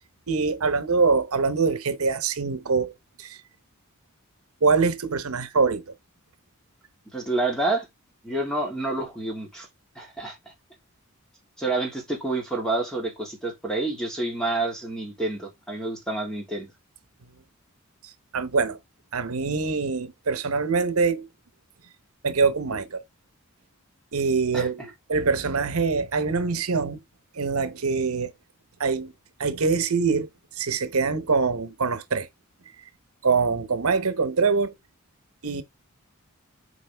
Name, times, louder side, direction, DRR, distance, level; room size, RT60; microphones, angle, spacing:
voice 1, 0.3-2.9 3.2-3.4 4.6-5.9 18.0-18.8 19.1-21.3 22.2-23.0 24.1-27.0 27.3-28.3 28.8-29.1 29.4-32.3 33.2-34.7 35.4-35.6, right 4 dB, 80° right, 0.9 m, -24 dB
voice 2, 7.1-7.9 8.2-9.7 9.9-10.4 11.6-16.7 24.5-24.7, right 2 dB, 5° left, 3.1 m, -28 dB
8.2 x 5.0 x 3.4 m
head